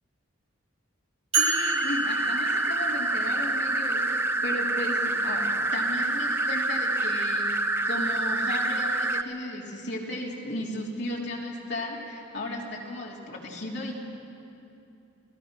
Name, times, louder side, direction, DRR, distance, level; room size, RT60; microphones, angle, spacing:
voice 1, 1.3-13.9, left 1 dB, 55° left, -2 dB, 3.2 m, -35 dB
sound 1, 1.3-9.2, right 2 dB, 10° right, 0.5 m, -27 dB
sound 2, 1.3-3.4, right 5 dB, 30° right, 2.8 m, -30 dB
29.5 x 18.5 x 6.0 m, 2.7 s
head